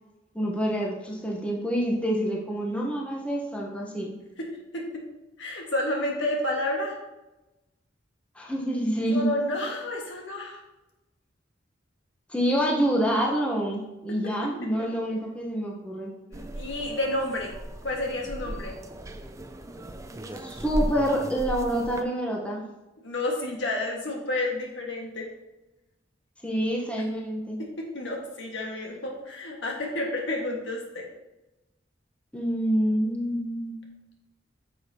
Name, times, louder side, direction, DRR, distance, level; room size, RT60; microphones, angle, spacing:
voice 1, 0.3-4.1 8.3-9.3 12.3-16.1 20.4-22.6 26.4-27.6 32.3-33.9, equal, 5° left, -2 dB, 1.0 m, -27 dB
voice 2, 5.4-6.9 9.1-10.6 14.8-14.9 16.3-17.5 17.8-18.7 23.0-25.3 27.6-31.1, left 1 dB, 80° left, 0 dB, 1.7 m, -30 dB
sound 1, 16.3-22.0, right 1 dB, 15° right, 0.4 m, -36 dB
9.5 x 6.2 x 2.9 m, 1.0 s
head